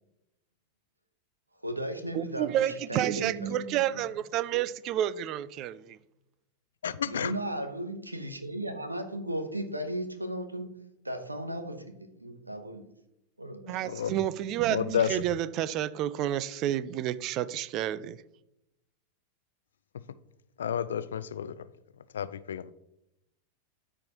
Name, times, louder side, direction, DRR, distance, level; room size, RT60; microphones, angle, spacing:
voice 1, 1.6-4.0 7.0-10.7 11.0-11.8 12.2-12.9 13.4-13.8, right 1 dB, 85° right, 1.0 m, -36 dB
voice 2, 2.1-6.0 13.7-18.2, right 12 dB, 35° right, 0.4 m, -30 dB
voice 3, 6.8-7.3 13.9-14.1 14.7-15.2 20.6-21.6 22.1-22.7, left 8 dB, 65° left, 0.4 m, -30 dB
13.0 x 4.5 x 2.9 m
figure-of-eight pair, 90°, 0 cm